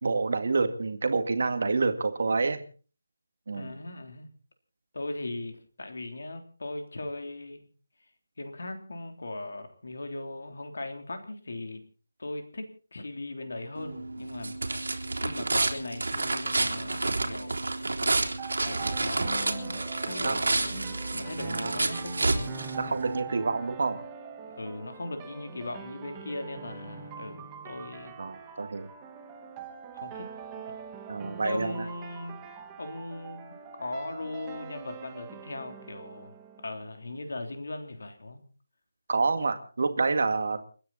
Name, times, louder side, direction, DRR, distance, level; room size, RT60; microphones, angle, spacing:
voice 1, 0.0-2.6 3.5-3.8 20.2-20.4 21.5-21.8 22.8-24.0 28.2-28.9 31.1-31.8 39.1-40.6, right 4 dB, 40° right, 8 dB, 2.0 m, -28 dB
voice 2, 3.5-4.3 4.9-7.6 8.4-11.8 12.2-14.6 15.2-17.7 18.6-22.7 24.5-28.2 29.9-30.3 31.4-32.3 32.8-33.4 33.8-36.3 36.6-38.4, left 2 dB, 55° left, 6 dB, 3.4 m, -38 dB
sound 1, 13.8-23.2, right 2 dB, 70° right, 3.6 m, -30 dB
sound 2, 18.4-37.3, right 6 dB, 10° right, 0.9 m, -44 dB
29.5 x 10.0 x 4.3 m, 0.40 s
figure-of-eight pair, 180°, 0 cm